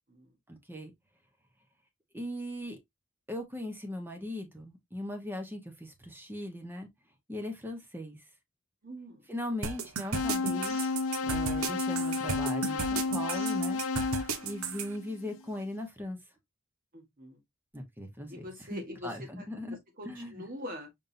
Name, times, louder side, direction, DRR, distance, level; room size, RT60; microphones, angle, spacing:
voice 1, 0.5-0.9 2.1-2.8 3.3-6.9 7.3-8.2 9.3-10.8 11.2-13.8 14.4-16.2 17.7-18.4 18.7-19.8 20.0-20.5, left 1 dB, 10° right, 1.2 m, -39 dB
voice 2, 8.8-9.3 16.9-17.4 18.3-19.4 20.0-20.9, left 1 dB, 45° right, 1.9 m, -43 dB
sound 1, 9.6-14.9, right 5 dB, 90° right, 0.8 m, -34 dB
sound 2, 10.1-15.3, left 4 dB, 70° left, 0.6 m, -32 dB
5.4 x 3.6 x 2.7 m
head